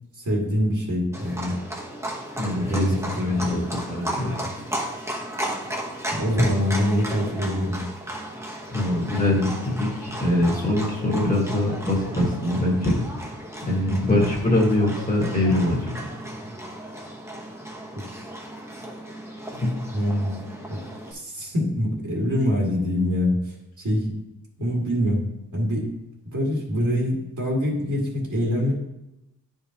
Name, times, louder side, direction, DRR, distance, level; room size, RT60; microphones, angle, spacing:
voice 1, 0.2-1.6 2.6-3.7 4.3-4.4 6.1-7.8 13.9-14.2 17.9-18.2 19.9-20.4 20.7-20.8 21.1-24.1 24.6-25.2 25.5-25.9 26.3-28.7, left 1 dB, 55° right, -3 dB, 2.1 m, -25 dB
Livestock farm animals working animals, 1.1-21.1, right 1 dB, 10° right, 1.0 m, -35 dB
voice 2, 2.4-4.3 6.3-6.5 8.7-16.0 19.5-19.8, left 1 dB, 25° left, -1 dB, 1.6 m, -23 dB
10.5 x 5.0 x 2.9 m, 0.90 s
wide cardioid pair, 135°, 36 cm